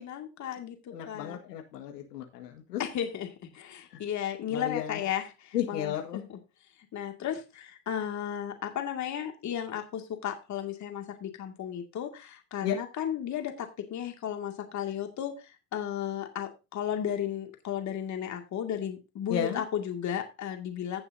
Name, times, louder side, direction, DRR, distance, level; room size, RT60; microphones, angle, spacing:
voice 1, 0.0-1.4 2.8-6.4 6.9-21.0, left 9 dB, 35° left, 4 dB, 2.3 m, -34 dB
voice 2, 0.9-2.8 4.5-5.0 5.5-6.3 12.6-12.8 19.3-19.6, left 10 dB, 80° left, 3 dB, 1.9 m, -33 dB
16.0 x 7.0 x 2.7 m, 0.29 s
hypercardioid pair, 90°, 47 cm